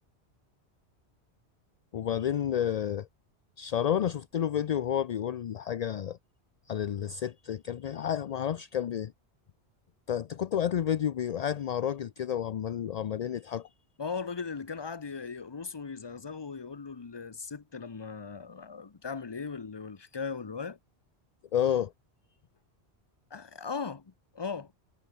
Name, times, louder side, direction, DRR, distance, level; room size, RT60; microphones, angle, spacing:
voice 1, 1.9-3.1 3.6-6.2 6.7-9.1 10.1-13.7 21.5-21.9, left 9 dB, 55° left, 0.5 m, -30 dB
voice 2, 14.0-20.8 23.3-24.7, left 5 dB, 25° left, 0.7 m, -38 dB
omnidirectional pair, 1.1 m